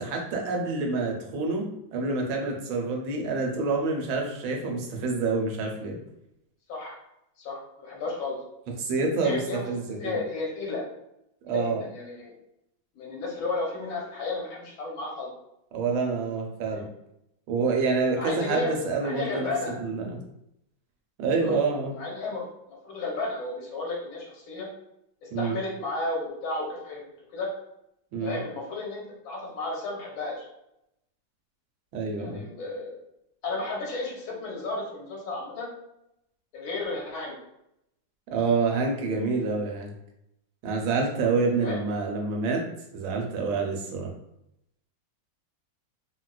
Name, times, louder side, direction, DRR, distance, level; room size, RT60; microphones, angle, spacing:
voice 1, 0.0-1.7 1.9-6.0 8.8-9.4 9.7-10.2 11.4-11.8 15.7-16.9 17.5-19.5 19.8-20.2 21.2-21.9 25.3-25.6 28.1-28.4 31.9-32.4 38.3-39.9 40.6-42.6 42.9-44.1, right 4 dB, 85° right, 1 dB, 1.4 m, -27 dB
voice 2, 6.7-7.0 7.4-8.4 9.2-9.7 10.0-10.8 11.5-12.3 13.0-15.3 16.7-16.9 18.1-18.7 19.0-19.8 21.4-21.6 21.9-24.7 25.2-27.0 27.3-27.5 28.2-30.4 32.2-32.9 33.4-35.7 36.5-37.3 41.6-41.8, left 3 dB, 80° left, -2 dB, 1.7 m, -33 dB
4.0 x 2.2 x 2.3 m, 0.81 s
omnidirectional pair, 2.2 m